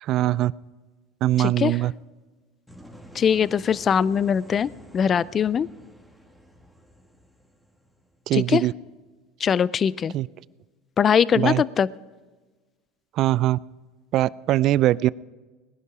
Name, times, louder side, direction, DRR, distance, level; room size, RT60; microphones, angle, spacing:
voice 1, 0.0-0.5 1.2-1.9 8.3-8.7 10.1-10.3 11.4-11.6 13.2-13.6 14.1-15.1, right 14 dB, 55° right, 22 dB, 0.3 m, -21 dB
voice 2, 1.4-1.8 3.1-5.7 8.3-8.6 9.4-10.1 11.0-11.9, left 7 dB, 35° left, 21 dB, 0.4 m, -21 dB
sound 1, 2.7-8.5, equal, 5° left, 2.2 m, -49 dB
19.5 x 11.0 x 4.8 m, 1.3 s
hypercardioid pair, 90°, 0 cm